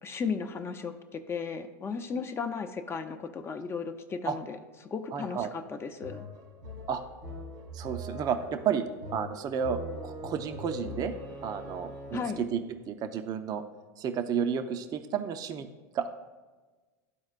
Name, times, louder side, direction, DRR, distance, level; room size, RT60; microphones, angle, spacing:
voice 1, 0.0-6.2 12.1-12.4, left 5 dB, 25° left, 7 dB, 0.6 m, -35 dB
voice 2, 5.1-5.5 6.9-7.0 7.7-11.1 11.4-12.6 12.9-13.6 14.0-15.7 15.9-16.1, right 7 dB, 40° right, 8 dB, 0.6 m, -32 dB
sound 1, 6.0-12.5, right 1 dB, 90° right, 1.8 m, -42 dB
12.5 x 4.3 x 2.5 m, 1.3 s
hypercardioid pair, 100°, 10 cm